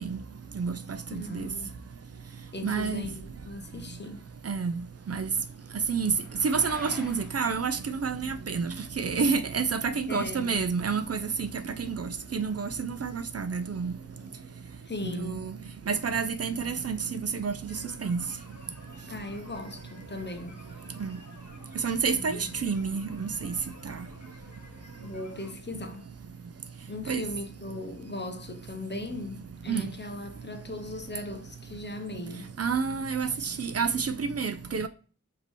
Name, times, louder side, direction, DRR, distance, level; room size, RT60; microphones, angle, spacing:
voice 1, 1.1-1.8 2.5-4.3 10.1-10.6 14.8-15.5 19.1-20.6 22.1-22.5 25.0-26.1 26.9-32.5, left 2 dB, 35° left, 0.7 m, -38 dB
sound 1, 1.6-11.5, equal, ahead, 1.6 m, -53 dB
voice 2, 2.6-3.1 4.5-4.8 5.1-5.3 5.9-6.1 6.4-11.5 11.8-13.9 15.0-15.5 15.9-18.2 21.0-21.2 21.8-23.5 27.1-27.2 29.7-29.9 32.6-34.9, right 5 dB, 55° right, 0.4 m, -29 dB
sound 2, 17.6-25.5, left 2 dB, 70° left, 1.1 m, -52 dB
5.1 x 2.8 x 3.1 m
wide cardioid pair, 45°, 29 cm